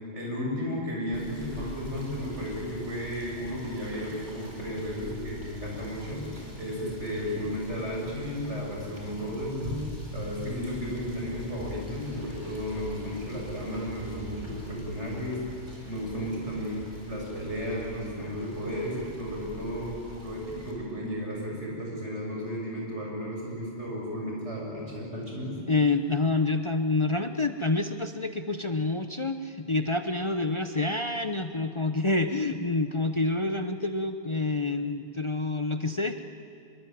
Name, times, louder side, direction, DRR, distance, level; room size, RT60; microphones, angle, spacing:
voice 1, 0.1-9.8 10.1-15.4 15.9-19.9 20.2-25.6, equal, 75° right, -3 dB, 7.6 m, -34 dB
Rain / Motor vehicle (road), 1.1-20.7, equal, 40° right, 5.0 m, -43 dB
voice 2, 25.7-36.2, left 3 dB, 30° left, 8 dB, 0.9 m, -27 dB
25.0 x 23.0 x 9.4 m, 2.4 s
omnidirectional pair, 1.2 m